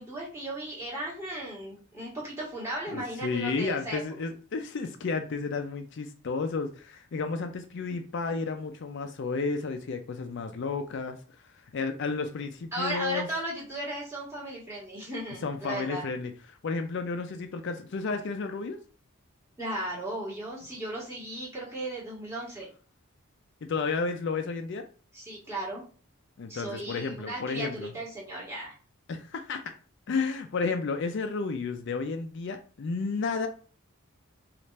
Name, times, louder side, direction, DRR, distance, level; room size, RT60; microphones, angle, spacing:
voice 1, 0.0-4.0 12.7-16.0 19.6-22.7 25.1-25.8 26.5-28.7, right 1 dB, 10° right, 1.5 m, -36 dB
voice 2, 2.9-11.2 11.7-13.3 15.4-18.8 23.6-24.8 26.4-27.9 29.1-29.7 30.1-33.5, left 4 dB, 55° left, 0.4 m, -32 dB
3.2 x 2.4 x 4.0 m
head